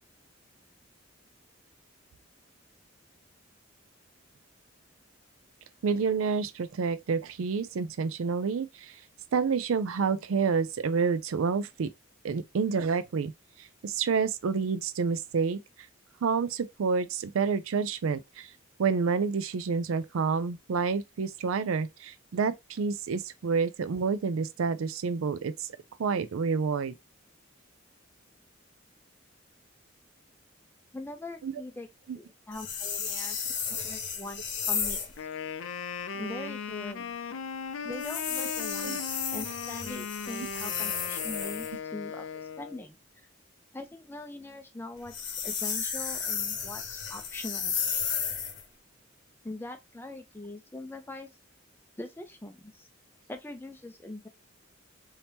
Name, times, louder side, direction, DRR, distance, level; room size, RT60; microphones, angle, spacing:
voice 1, 5.8-8.9 9.3-11.9 12.2-13.3 13.8-15.6 16.2-18.5 18.8-25.7 26.0-26.9 31.4-31.5 38.8-39.0, right 5 dB, 90° right, 0.4 m, -28 dB
voice 2, 30.9-31.9 32.1-35.3 36.1-37.2 37.8-39.0 39.3-43.0 43.7-47.7 49.4-51.3 52.0-52.8 53.3-54.3, left 2 dB, 10° left, 0.5 m, -42 dB
sound 1, 32.5-35.2 37.9-41.8 45.0-48.6, left 7 dB, 55° left, 0.9 m, -33 dB
Wind instrument woodwind instrument, 35.1-42.8, left 6 dB, 80° left, 0.5 m, -37 dB
3.4 x 2.8 x 2.8 m
head